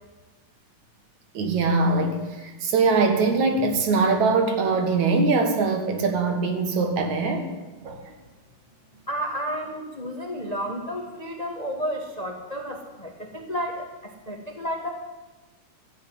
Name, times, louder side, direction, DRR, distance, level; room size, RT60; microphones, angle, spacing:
voice 1, 1.3-7.5 7.8-8.1, right 3 dB, 65° right, 3.1 m, -22 dB
voice 2, 9.0-14.9, equal, 30° left, 0.7 m, -32 dB
13.5 x 10.5 x 9.6 m
omnidirectional pair, 3.6 m